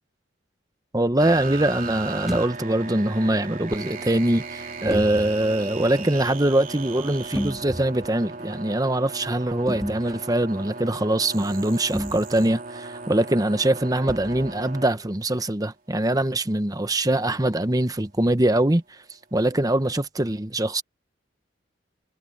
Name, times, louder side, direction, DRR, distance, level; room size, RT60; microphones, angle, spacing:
voice 1, 0.9-19.0 19.3-20.8, right 1 dB, 20° right, 0.9 m, -23 dB
sound 1, 1.2-14.9, right 4 dB, 45° right, 3.5 m, -37 dB
sound 2, 2.3-2.5 4.8-5.4 7.2-8.1 9.7-10.2 11.9-12.4 14.1-14.5, equal, ahead, 4.0 m, -32 dB
head